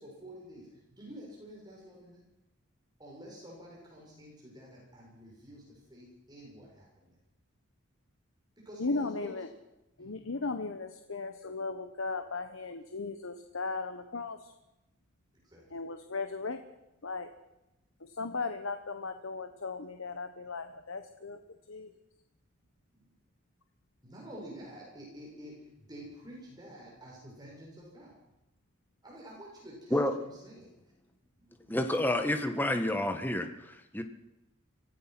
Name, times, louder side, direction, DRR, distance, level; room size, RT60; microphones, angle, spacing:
voice 1, 0.0-2.2 3.0-7.2 8.6-9.5 10.0-10.1 15.4-15.8 22.9-23.1 24.0-28.2 29.0-30.7 31.4-31.9, equal, 20° right, -3 dB, 7.1 m, -49 dB
voice 2, 8.8-9.5 10.0-14.5 15.7-16.6 17.0-17.3 18.0-21.4 21.7-21.9, left 3 dB, 75° left, 8 dB, 1.2 m, -36 dB
voice 3, 31.7-34.0, left 1 dB, 10° left, 6 dB, 1.5 m, -29 dB
25.0 x 17.5 x 6.1 m, 0.93 s
head